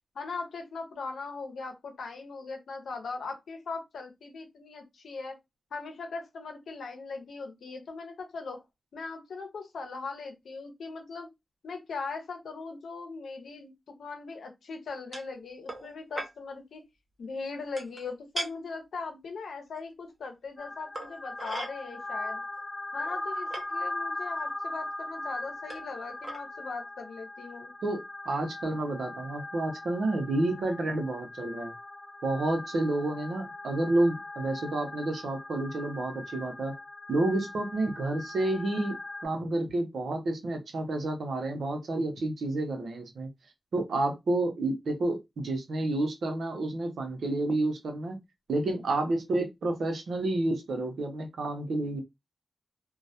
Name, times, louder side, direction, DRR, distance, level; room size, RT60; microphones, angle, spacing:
voice 1, 0.1-5.4 5.7-8.6 8.9-11.3 11.6-13.7 14.0-16.8 17.2-22.4 22.9-27.7, left 4 dB, 85° left, 0.7 m, -39 dB
sound 1, 15.1-15.3 15.7-15.9 16.2-16.3 17.8-18.0 18.3-18.5 19.8-19.9 20.9-21.7 22.6-22.7 23.0-23.6 24.5-24.6 25.7-25.9 26.2-26.4, right 1 dB, 40° right, 0.7 m, -37 dB
sound 2, 20.6-39.3, left 2 dB, 40° left, 0.5 m, -39 dB
voice 2, 27.8-31.7 32.2-36.7 37.1-39.0 39.2-43.3 43.7-48.2 48.5-52.0, right 2 dB, 80° right, 0.6 m, -30 dB
2.2 x 2.0 x 2.7 m
cardioid pair, 45°, 0 cm